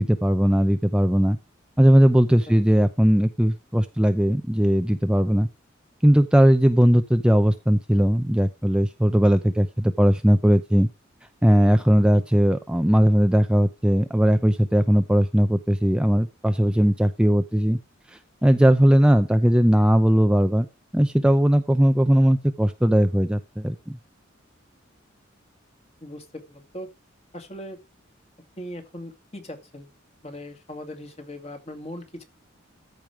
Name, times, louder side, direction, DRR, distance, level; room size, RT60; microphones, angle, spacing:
voice 1, 0.0-1.4 1.8-5.5 6.0-10.9 11.4-17.8 18.1-20.7 20.9-24.0, equal, 5° right, 0.5 m, -19 dB
voice 2, 26.0-26.9 27.3-27.8 28.6-29.9 30.2-32.3, left 1 dB, 30° left, 2.3 m, -39 dB
14.0 x 5.3 x 4.6 m
head